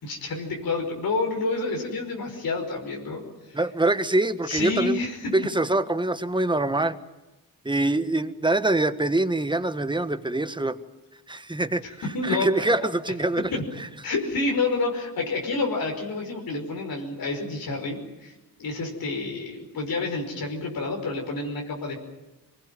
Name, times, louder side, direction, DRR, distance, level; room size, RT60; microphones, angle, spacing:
voice 1, 0.0-3.2 3.5-3.6 4.5-5.3 12.1-12.9 14.0-18.3 18.6-22.0, left 3 dB, 75° left, 1 dB, 5.5 m, -29 dB
voice 2, 3.5-5.0 5.3-7.0 7.6-10.8 11.3-11.8 12.2-13.5 13.8-13.9, right 2 dB, 15° right, 11 dB, 1.5 m, -24 dB
24.5 x 20.0 x 9.1 m, 0.99 s
cardioid pair, 75°, 36 cm